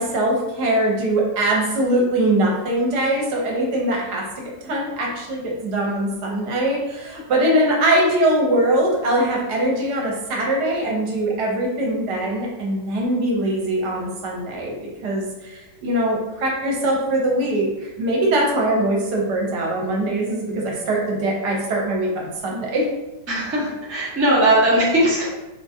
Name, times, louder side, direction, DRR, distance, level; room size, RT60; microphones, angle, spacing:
voice 1, 0.0-4.2 4.6-14.7 15.0-22.8, right 1 dB, 70° right, -2 dB, 1.3 m, -22 dB
voice 2, 23.3-25.3, right 1 dB, 20° right, -7 dB, 0.4 m, -19 dB
3.6 x 2.4 x 2.6 m, 1.0 s
omnidirectional pair, 1.9 m